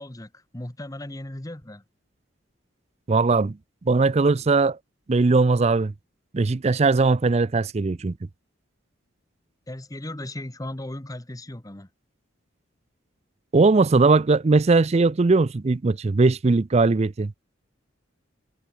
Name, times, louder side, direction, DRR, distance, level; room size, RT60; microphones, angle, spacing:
voice 1, 0.0-1.8 9.7-11.9, left 1 dB, 20° left, 1.1 m, -36 dB
voice 2, 3.1-3.6 3.9-4.8 5.1-5.9 6.3-8.2 13.5-17.3, right 3 dB, 35° right, 0.4 m, -19 dB
head